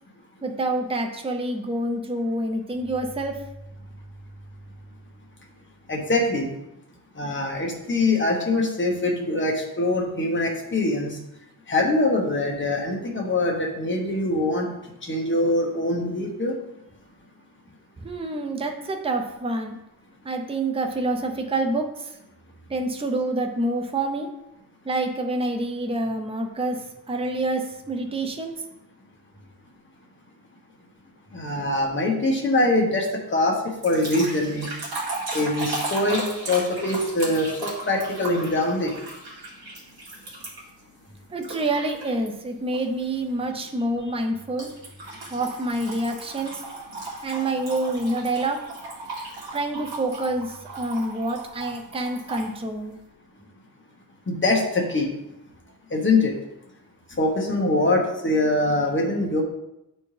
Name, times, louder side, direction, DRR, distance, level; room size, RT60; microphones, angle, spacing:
voice 1, 0.4-3.4 18.0-19.7 20.2-22.2 22.7-24.3 24.8-26.8 27.1-28.5 41.3-44.7 45.3-46.6 47.2-48.6 49.5-53.0, right 2 dB, 15° right, 4 dB, 0.6 m, -27 dB
voice 2, 5.9-6.5 7.2-11.2 11.7-14.7 15.0-16.6 31.3-33.5 33.8-34.7 35.3-36.2 36.5-38.9 54.3-55.1 55.9-56.3 57.2-59.4, left 2 dB, 30° left, 0 dB, 1.2 m, -23 dB
sound 1, 33.8-40.8 41.4-42.3 42.7-43.0 44.6-52.5, right 2 dB, 65° right, 2.4 m, -36 dB
8.7 x 4.3 x 3.3 m, 0.87 s
wide cardioid pair, 155°, 39 cm